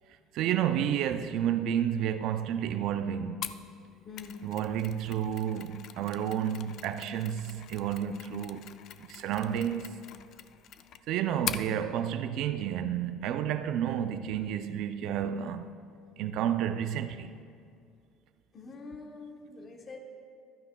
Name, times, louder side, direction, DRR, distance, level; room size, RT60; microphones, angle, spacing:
voice 1, 0.3-3.6 4.4-9.9 11.1-15.7 16.2-17.3, right 9 dB, 55° right, 0.4 m, -31 dB
Mechanisms, 3.4-11.7, left 10 dB, 45° left, 0.3 m, -43 dB
voice 2, 18.5-20.0, left 4 dB, 25° left, 1.0 m, -45 dB
15.0 x 12.0 x 2.2 m
cardioid pair, 165°, 0 cm